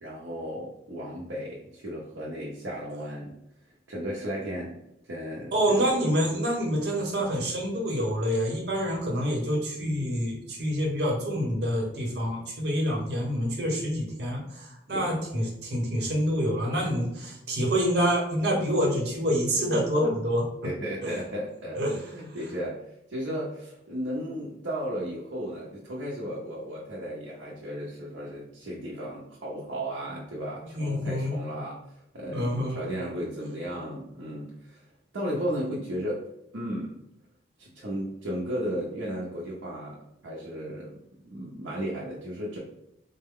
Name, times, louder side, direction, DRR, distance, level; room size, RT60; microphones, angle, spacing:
voice 1, 0.0-3.4 3.9-5.9 14.9-15.1 20.6-21.8 22.1-22.8 23.1-31.8 32.1-34.9 35.1-36.2 36.5-37.0 37.6-42.6, equal, 80° right, -5 dB, 0.7 m, -35 dB
voice 2, 5.5-20.4 21.0-21.2 21.7-22.0 30.7-31.4 32.3-32.8, equal, 55° right, -1 dB, 1.0 m, -27 dB
4.0 x 2.1 x 3.7 m, 0.84 s
head